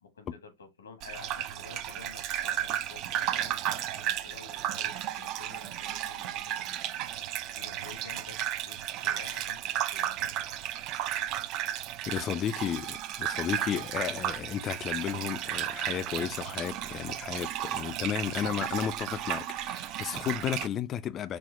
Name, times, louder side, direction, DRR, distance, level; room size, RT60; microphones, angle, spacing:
voice 1, 0.0-6.8 7.5-10.6 12.3-12.5, left 5 dB, 80° left, 1.1 m, -50 dB
Gurgling / Bathtub (filling or washing), 1.0-20.7, right 12 dB, 40° right, 0.4 m, -34 dB
voice 2, 12.0-21.4, left 9 dB, 30° left, 0.3 m, -33 dB
4.3 x 2.1 x 3.7 m
hypercardioid pair, 100°, 0 cm